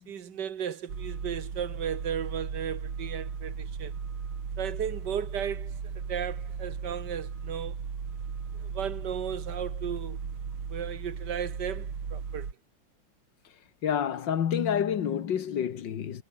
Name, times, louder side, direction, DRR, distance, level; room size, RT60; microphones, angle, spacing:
voice 1, 0.1-3.9 4.6-7.8 8.5-10.2 10.7-12.5, right 8 dB, 60° right, 1.8 m, -35 dB
sound 1, 0.9-12.5, right 6 dB, 75° right, 3.4 m, -36 dB
voice 2, 13.8-16.2, left 8 dB, 60° left, 2.0 m, -28 dB
omnidirectional pair, 2.3 m